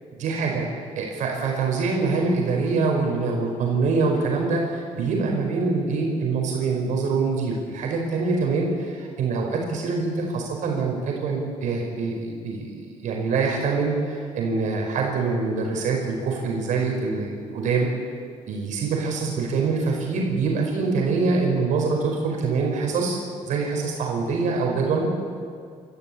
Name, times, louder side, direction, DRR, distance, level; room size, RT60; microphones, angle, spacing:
voice 1, 0.2-0.6 1.0-17.9 18.5-25.1, right 4 dB, 70° right, 0 dB, 5.0 m, -24 dB
28.0 x 14.5 x 8.7 m, 2.2 s
cardioid pair, 150°, 13 cm